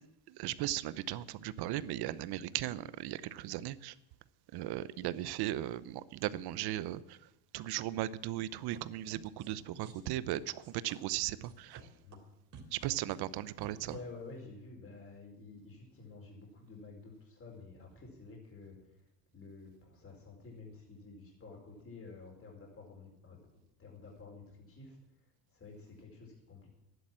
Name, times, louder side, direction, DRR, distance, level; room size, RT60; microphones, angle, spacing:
voice 1, 0.3-3.9 4.5-7.2 7.5-11.8 12.7-14.0, right 14 dB, 55° right, 17 dB, 0.8 m, -37 dB
sound 1, 8.7-8.8 9.1-9.6 9.8-10.0 10.3-11.8 12.1-12.2 12.5-14.0, right 7 dB, 40° right, 3.3 m, -51 dB
voice 2, 13.7-18.8 19.3-23.4 23.8-25.0 25.5-26.7, left 3 dB, 30° left, 0 dB, 4.7 m, -50 dB
12.0 x 11.0 x 7.5 m, 0.87 s
supercardioid pair, 100°, 46 cm